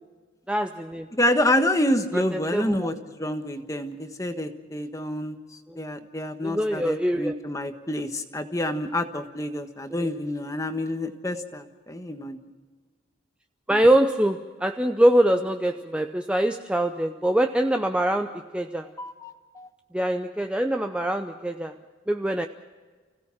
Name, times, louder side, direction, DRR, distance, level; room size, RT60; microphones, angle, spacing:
voice 1, 0.5-1.1 2.1-2.9 5.7-5.8 6.4-7.4 9.9-10.1 13.7-18.9 19.9-21.7 22.1-22.5, right 1 dB, 5° right, 6 dB, 0.6 m, -24 dB
voice 2, 1.1-5.4 5.8-12.4 19.0-19.7, left 1 dB, 15° left, 7 dB, 1.3 m, -28 dB
30.0 x 17.0 x 5.9 m, 1.4 s
head